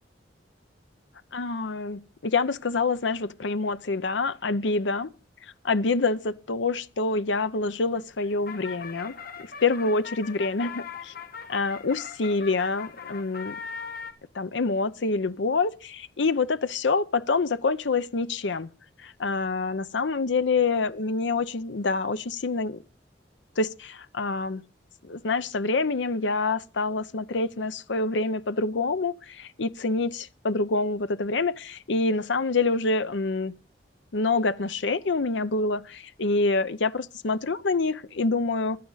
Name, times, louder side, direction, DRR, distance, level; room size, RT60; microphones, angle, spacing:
voice 1, 1.3-5.1 5.6-9.1 9.6-11.1 11.5-13.6 14.3-18.7 19.0-22.8 23.6-24.6 25.1-33.5 34.1-38.8, left 3 dB, 80° left, 0.7 m, -26 dB
sound 1, 8.0-14.1, left 6 dB, 50° left, 1.6 m, -40 dB
16.0 x 11.5 x 4.0 m
head